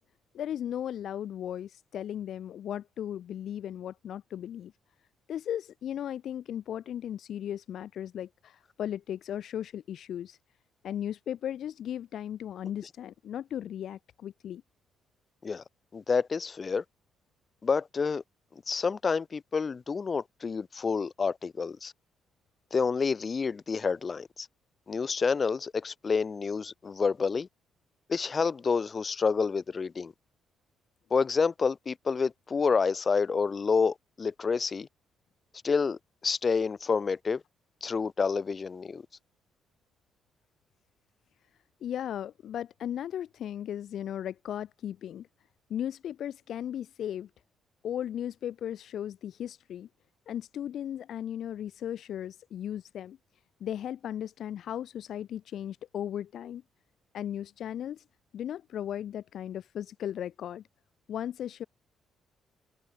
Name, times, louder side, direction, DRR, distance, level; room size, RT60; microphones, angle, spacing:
voice 1, 0.3-4.7 5.3-10.4 10.8-14.6 41.8-45.3 45.7-47.3 47.8-49.9 50.3-53.2 53.6-56.6 57.1-58.0 58.3-60.6 61.1-61.6, left 10 dB, 60° left, 0.3 m, -36 dB
voice 2, 15.9-16.8 17.6-18.2 18.7-21.9 22.7-24.5 24.9-27.5 28.1-30.1 31.1-34.9 35.6-37.4 37.8-39.0, left 5 dB, 30° left, 0.7 m, -28 dB
cardioid pair, 135°, 0 cm